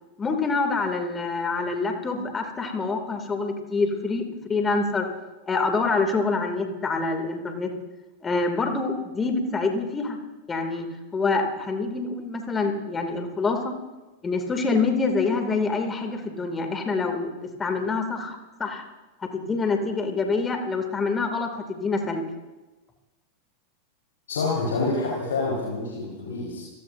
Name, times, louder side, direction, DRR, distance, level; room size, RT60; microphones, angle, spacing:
voice 1, 0.2-4.2 4.5-5.1 5.4-7.7 8.2-10.2 10.5-10.9 11.1-13.7 14.2-18.8 19.2-22.2, left 3 dB, 15° left, 4 dB, 2.6 m, -26 dB
voice 2, 24.3-26.6, left 3 dB, 65° left, -5 dB, 4.8 m, -27 dB
27.0 x 18.5 x 2.7 m, 1.1 s
figure-of-eight pair, 90°, 0 cm